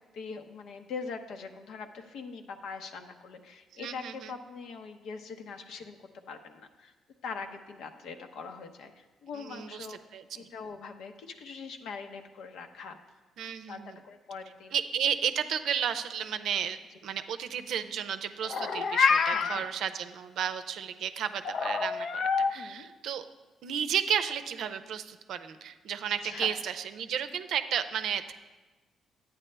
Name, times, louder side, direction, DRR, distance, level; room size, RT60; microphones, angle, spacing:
voice 1, 0.1-6.9 7.2-10.0 10.3-13.0 13.4-14.7 19.3-19.8 22.5-22.9 26.2-26.6, left 5 dB, 80° left, 6 dB, 0.8 m, -42 dB
voice 2, 3.8-4.3 9.3-10.5 13.4-14.0 14.7-23.2 23.6-28.3, right 8 dB, 75° right, 10 dB, 0.5 m, -33 dB
Meow, 18.4-19.6 21.5-22.5, left 5 dB, 60° left, 0.5 m, -27 dB
11.0 x 9.0 x 3.3 m, 1.2 s
cardioid pair, 90°, 0 cm